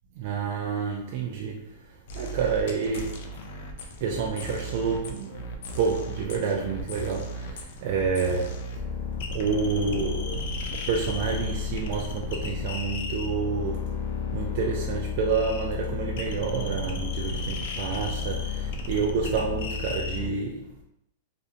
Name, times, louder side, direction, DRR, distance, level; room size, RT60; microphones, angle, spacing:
voice 1, 0.2-1.7 2.1-3.3 4.0-5.5 5.8-8.6 9.3-10.5 10.7-13.9 14.3-20.8, right 5 dB, 50° right, 0.3 m, -29 dB
sound 1, 2.1-20.3, left 3 dB, 60° left, 0.4 m, -33 dB
2.5 x 2.1 x 2.7 m
supercardioid pair, 160°, 0 cm